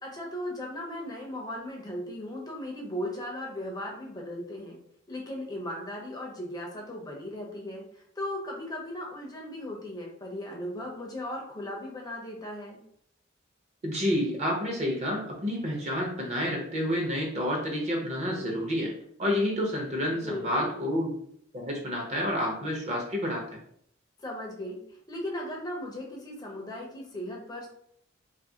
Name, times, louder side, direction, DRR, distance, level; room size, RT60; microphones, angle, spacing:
voice 1, 0.0-4.8 5.1-12.8 20.2-20.8 24.2-27.7, left 1 dB, 20° left, -1 dB, 0.5 m, -37 dB
voice 2, 13.8-18.9 19.2-21.1 21.5-23.6, equal, 35° right, -1 dB, 0.7 m, -29 dB
2.6 x 2.4 x 2.7 m, 0.69 s
head